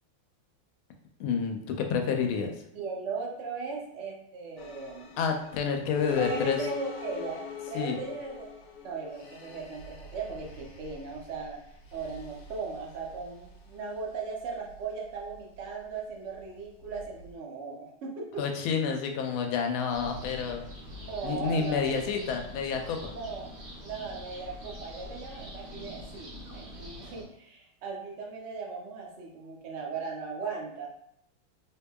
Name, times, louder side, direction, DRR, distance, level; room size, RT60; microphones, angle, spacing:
voice 1, 1.2-2.5 5.2-6.6 7.7-8.0 18.4-20.6 21.2-23.1, left 6 dB, 85° left, 4 dB, 1.4 m, -29 dB
voice 2, 2.7-5.1 6.1-8.5 8.8-11.6 11.9-18.8 21.0-22.1 23.0-23.5 23.8-30.9, right 4 dB, 90° right, -1 dB, 0.6 m, -38 dB
sound 1, 4.6-17.3, left 7 dB, 70° left, 1.0 m, -43 dB
sound 2, 19.9-27.2, equal, 40° right, 1.2 m, -44 dB
3.5 x 3.1 x 2.2 m, 0.74 s
omnidirectional pair, 2.2 m